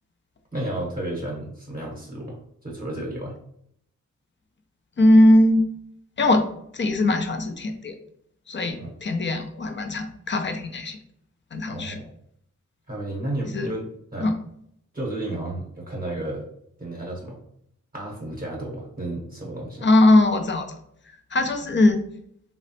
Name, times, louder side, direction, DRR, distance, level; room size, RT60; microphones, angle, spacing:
voice 1, 0.5-3.4 8.8-8.9 11.6-12.1 12.9-13.8 14.1-14.3 14.9-16.5 16.8-17.4 17.9-19.9, right 1 dB, 30° right, -3 dB, 0.9 m, -32 dB
voice 2, 5.0-5.6 6.2-6.5 6.7-7.9 8.5-11.0 11.5-12.0 13.4-13.7 14.2-14.3 19.8-20.8 21.3-22.0, left 1 dB, 40° left, 6 dB, 0.5 m, -20 dB
3.0 x 2.0 x 2.8 m, 0.69 s
cardioid pair, 55°, 31 cm